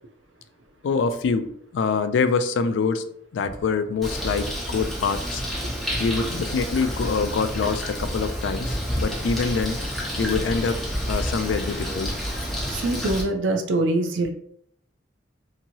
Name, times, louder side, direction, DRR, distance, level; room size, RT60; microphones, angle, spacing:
voice 1, 0.8-3.0 3.3-5.4 6.0-9.8 10.2-12.1, left 5 dB, 75° left, 10 dB, 0.3 m, -25 dB
Bird, 4.0-13.2, equal, ahead, 0.7 m, -29 dB
voice 2, 12.7-14.3, right 2 dB, 90° right, 5 dB, 0.5 m, -24 dB
2.9 x 2.7 x 2.6 m, 0.67 s
head